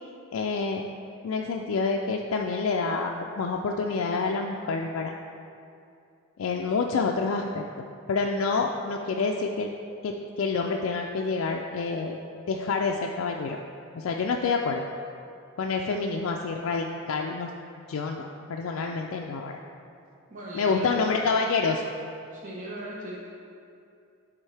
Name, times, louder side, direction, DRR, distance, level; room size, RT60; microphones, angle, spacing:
voice 1, 0.3-0.8 1.2-5.1 6.4-7.7 8.1-9.7 10.0-12.2 12.5-13.6 13.9-14.8 15.6-17.5 17.9-19.6 20.5-21.8, left 4 dB, 75° left, 1 dB, 0.4 m, -28 dB
voice 2, 20.3-21.1 22.3-23.2, right 1 dB, 40° right, -5 dB, 0.9 m, -39 dB
10.5 x 3.7 x 3.3 m, 2.5 s
head